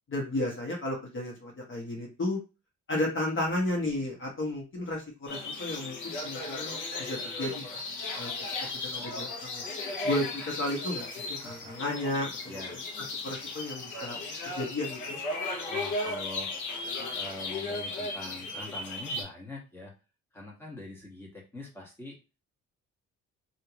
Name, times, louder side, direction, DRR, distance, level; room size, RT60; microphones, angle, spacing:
voice 1, 0.1-2.4 2.9-7.7 8.2-8.3 8.7-9.6 10.0-14.2 14.6-15.2, left 1 dB, 40° left, -2 dB, 1.5 m, -33 dB
sound 1, 5.3-19.2, left 2 dB, 80° left, 1.1 m, -36 dB
voice 2, 11.4-11.7 12.5-12.8 15.7-16.5 16.9-19.9 20.3-22.1, left 2 dB, 10° left, -3 dB, 1.6 m, -43 dB
3.4 x 2.8 x 3.0 m, 0.30 s
cardioid pair, 90°, 30 cm